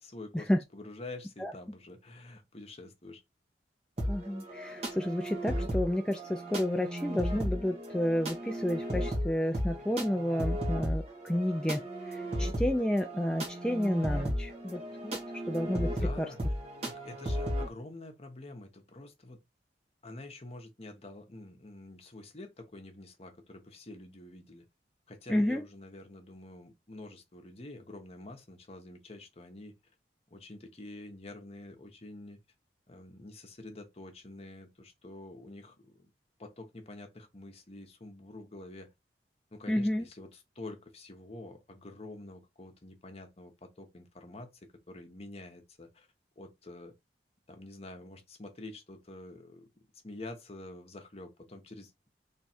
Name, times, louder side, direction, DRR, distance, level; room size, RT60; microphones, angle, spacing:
voice 1, 0.0-3.2 15.9-16.5 16.8-19.4 20.0-24.6 25.1-29.7 30.3-32.4 32.9-36.1 36.4-38.9 39.5-46.1 46.4-46.9 47.5-52.1, left 2 dB, 35° left, 0.9 m, -47 dB
sound 1, 4.0-17.7, equal, 35° right, 1.5 m, -35 dB
voice 2, 4.1-15.2 15.5-15.9 16.2-16.3 25.3-25.6 39.7-40.0, left 1 dB, 5° left, 0.4 m, -31 dB
3.3 x 3.1 x 4.3 m
head